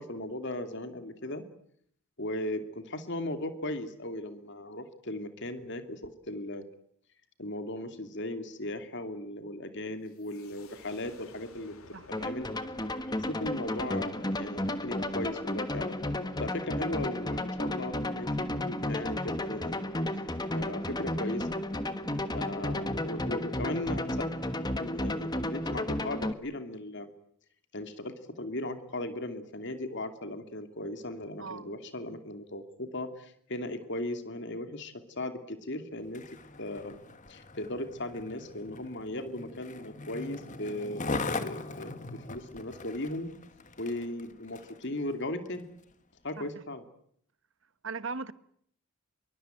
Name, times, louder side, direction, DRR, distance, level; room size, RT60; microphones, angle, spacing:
voice 1, 0.0-1.4 2.2-6.6 7.4-12.5 13.0-16.0 16.4-19.8 20.5-21.5 22.3-24.3 24.8-27.1 27.7-36.2 36.6-37.0 37.3-43.3 43.8-45.7 46.2-46.8, left 1 dB, 55° left, 9 dB, 2.6 m, -37 dB
sound 1, 10.0-15.6, left 3 dB, 75° left, 2.8 m, -56 dB
voice 2, 11.9-12.3 31.4-31.7 46.4-46.5 47.8-48.3, right 4 dB, 60° right, 15 dB, 1.2 m, -38 dB
sound 2, 12.1-26.3, left 1 dB, 20° left, 1.4 m, -33 dB
Skateboard, 36.0-44.8 45.5-45.6, left 3 dB, 35° left, 1.7 m, -40 dB
25.5 x 23.5 x 9.1 m, 0.68 s
head